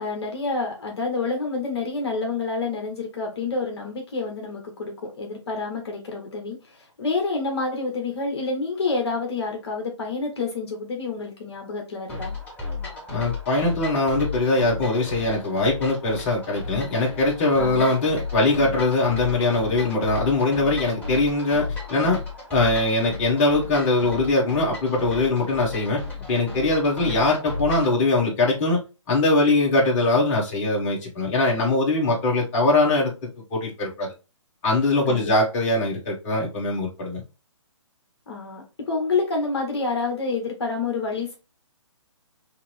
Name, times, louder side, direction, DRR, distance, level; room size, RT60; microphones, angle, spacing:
voice 1, 0.0-12.3 17.6-17.9 35.1-35.3 38.3-41.4, left 3 dB, 55° left, 1.1 m, -28 dB
sound 1, 12.1-28.0, left 4 dB, 10° left, 1.2 m, -34 dB
voice 2, 13.1-22.2 22.5-26.0 26.3-33.1 33.5-34.1 34.6-37.2, left 2 dB, 25° left, 1.5 m, -22 dB
5.7 x 2.1 x 3.2 m
hypercardioid pair, 150°, 16 cm